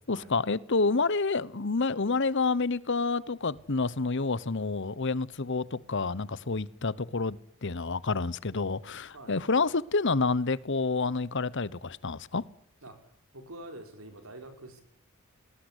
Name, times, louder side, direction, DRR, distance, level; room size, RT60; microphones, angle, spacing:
voice 1, 0.1-12.4, left 3 dB, 60° left, 1.0 m, -29 dB
voice 2, 9.1-9.5 12.8-13.0 13.3-14.8, right 1 dB, 75° right, 5.0 m, -46 dB
20.0 x 18.5 x 9.9 m
head